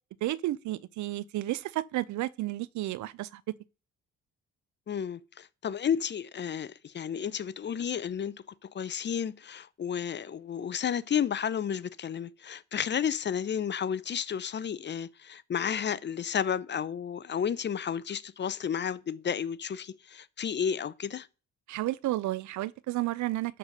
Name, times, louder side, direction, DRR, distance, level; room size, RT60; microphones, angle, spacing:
voice 1, 0.2-3.4 21.7-23.6, right 16 dB, 70° right, 0.5 m, -32 dB
voice 2, 4.9-8.3 8.7-21.3, left 8 dB, 35° left, 0.5 m, -32 dB
12.0 x 4.0 x 6.4 m
cardioid pair, 90°, 30 cm